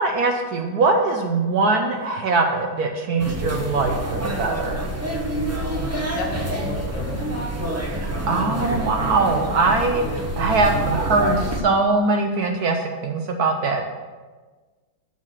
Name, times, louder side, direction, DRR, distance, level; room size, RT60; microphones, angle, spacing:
voice 1, 0.0-4.8 7.9-13.8, right 3 dB, 65° right, 4 dB, 1.0 m, -22 dB
sound 1, 3.2-11.6, right 1 dB, 20° right, 0.4 m, -27 dB
voice 2, 5.7-7.3 9.3-9.4, left 2 dB, 75° left, -1 dB, 2.4 m, -35 dB
7.3 x 5.9 x 6.5 m, 1.4 s
omnidirectional pair, 2.2 m